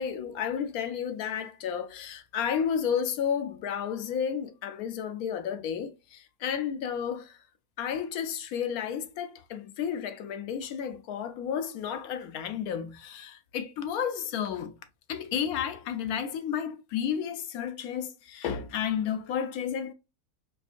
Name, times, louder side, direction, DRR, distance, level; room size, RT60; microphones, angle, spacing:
voice 1, 0.0-7.4 7.8-14.7 15.1-19.9, left 8 dB, 75° left, 1.0 m, -32 dB
4.6 x 2.5 x 2.4 m
omnidirectional pair, 1.6 m